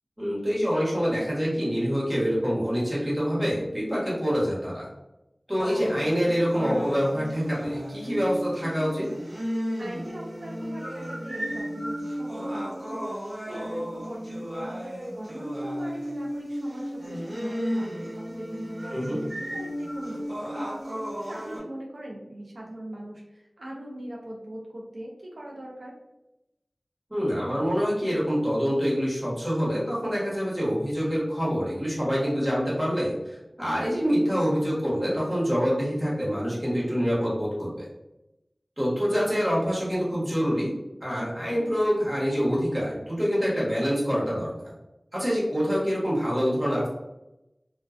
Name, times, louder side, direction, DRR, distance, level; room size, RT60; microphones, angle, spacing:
voice 1, 0.2-4.9 5.5-9.1 18.9-19.2 27.1-37.9 38.8-40.7 41.0-44.7 45.1-46.9, equal, 20° right, -6 dB, 1.1 m, -26 dB
sound 1, 5.6-21.6, equal, 75° right, 0.8 m, -34 dB
voice 2, 9.8-14.8 15.1-20.7 21.3-25.9, right 1 dB, 90° right, -2 dB, 0.4 m, -41 dB
2.3 x 2.2 x 2.4 m, 0.93 s
wide cardioid pair, 50°, 0 cm